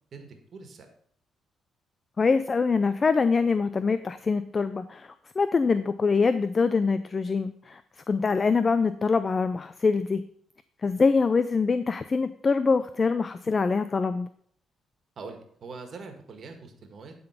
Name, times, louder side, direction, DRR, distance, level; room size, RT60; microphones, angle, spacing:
voice 1, 0.1-0.9 15.2-17.1, right 4 dB, 55° right, 5 dB, 1.8 m, -43 dB
voice 2, 2.2-7.8 8.1-10.2 10.8-14.3, left 4 dB, 35° left, 12 dB, 0.4 m, -24 dB
11.5 x 3.9 x 5.8 m, 0.63 s
cardioid pair, 90°, 0 cm